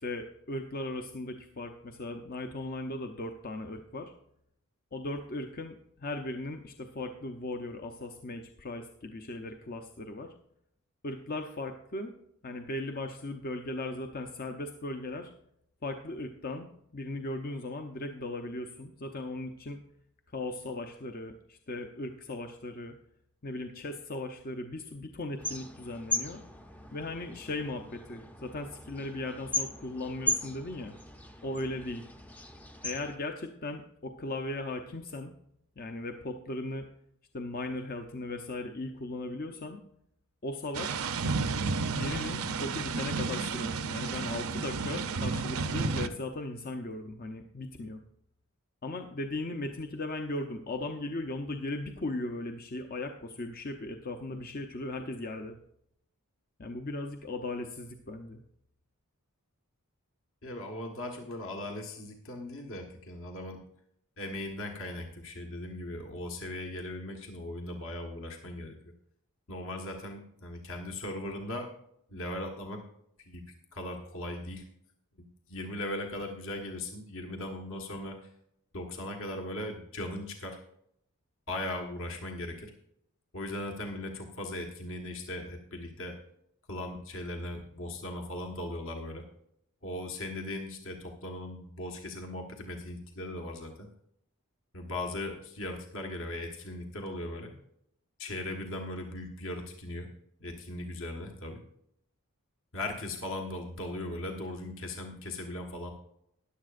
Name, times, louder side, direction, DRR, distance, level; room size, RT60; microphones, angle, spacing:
voice 1, 0.0-4.1 4.9-10.3 11.0-12.1 12.4-15.3 15.8-19.8 20.3-22.9 23.4-26.4 26.9-30.9 31.4-32.0 32.8-35.3 35.8-36.9 37.3-39.8 40.4-41.1 41.9-48.0 48.8-55.6 56.6-58.4, left 2 dB, 40° left, 5 dB, 0.7 m, -37 dB
sound 1, 25.4-33.2, left 1 dB, 5° left, 0.6 m, -37 dB
sound 2, 40.7-46.1, right 4 dB, 70° right, 0.7 m, -32 dB
voice 2, 60.4-63.6 64.2-68.8 69.5-71.7 72.1-72.8 73.2-73.4 73.7-74.6 75.2-78.3 78.7-80.6 81.5-82.7 83.3-86.2 86.7-89.2 89.8-93.9 94.7-97.5 98.2-100.1 100.4-101.6 102.7-105.9, left 1 dB, 60° left, 3 dB, 1.4 m, -38 dB
14.0 x 10.5 x 2.5 m, 0.74 s
head